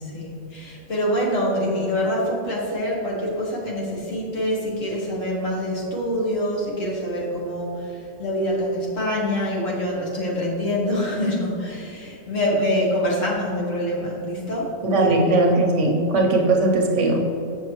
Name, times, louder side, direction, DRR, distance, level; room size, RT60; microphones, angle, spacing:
voice 1, 0.0-15.2, equal, 70° left, -4 dB, 1.7 m, -25 dB
voice 2, 14.8-17.2, right 2 dB, 65° right, 1 dB, 1.1 m, -19 dB
7.1 x 6.1 x 3.0 m, 2.6 s
omnidirectional pair, 1.4 m